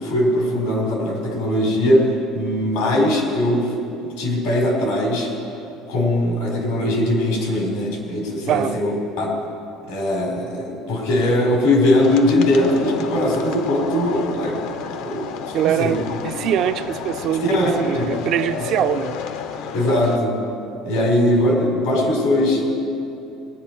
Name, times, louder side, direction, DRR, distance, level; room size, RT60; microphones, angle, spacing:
voice 1, 0.0-3.7 4.2-5.3 5.9-9.3 9.9-14.6 15.0-16.0 17.5-18.0 18.6-18.7 19.7-20.3 20.8-22.8, left 1 dB, 85° left, -1 dB, 4.1 m, -20 dB
voice 2, 8.5-8.8 15.5-17.5 17.8-19.2, right 10 dB, 45° right, 10 dB, 0.4 m, -23 dB
sound 1, 12.0-20.2, left 6 dB, 70° left, 0.8 m, -31 dB
19.5 x 10.5 x 4.5 m, 2.8 s
cardioid pair, 165°, 0 cm